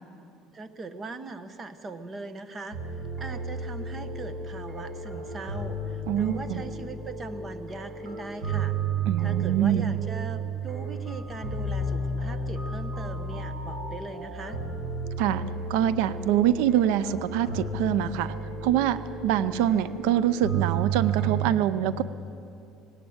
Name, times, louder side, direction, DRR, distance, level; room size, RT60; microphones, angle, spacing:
voice 1, 0.5-8.8 9.2-14.6, right 3 dB, 20° right, 11 dB, 0.9 m, -40 dB
sound 1, 2.7-21.5, right 4 dB, 40° right, 6.0 m, -32 dB
voice 2, 6.1-6.6 9.1-9.9 15.2-15.4 15.7-18.3 18.6-22.0, right 11 dB, 85° right, 15 dB, 0.5 m, -25 dB
19.0 x 17.5 x 7.9 m, 2.6 s
cardioid pair, 160°, 0 cm